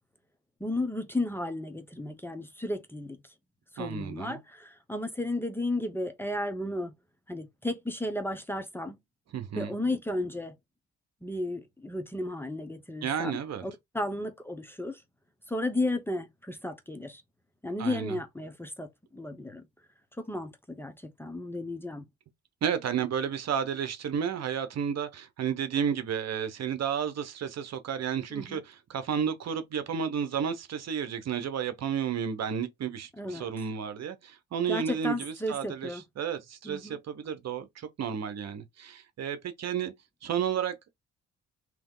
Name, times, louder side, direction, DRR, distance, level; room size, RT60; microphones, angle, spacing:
voice 1, 0.6-3.2 3.7-6.9 7.3-9.0 9.6-10.5 11.2-15.0 15.5-17.2 17.6-19.6 20.2-22.0 28.3-28.6 33.2-33.5 34.7-36.0 36.6-37.0, left 1 dB, 5° left, 0.8 m, -34 dB
voice 2, 3.8-4.4 9.3-9.7 13.0-13.7 17.8-18.2 22.6-39.9 40.2-40.9, right 7 dB, 60° right, 1.0 m, -32 dB
3.4 x 3.0 x 3.7 m
cardioid pair, 90°, 30 cm